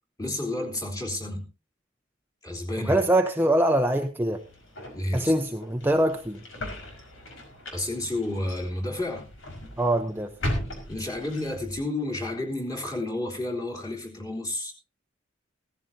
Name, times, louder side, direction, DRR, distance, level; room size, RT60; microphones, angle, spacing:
voice 1, 0.2-1.5 2.4-3.0 4.9-5.3 7.7-9.3 10.9-14.7, left 1 dB, 20° left, 3.5 m, -31 dB
voice 2, 2.9-4.4 5.1-6.4 9.8-10.3, right 1 dB, 10° right, 0.8 m, -23 dB
sound 1, 4.3-11.8, left 1 dB, 80° left, 5.3 m, -38 dB
16.5 x 14.5 x 2.8 m
head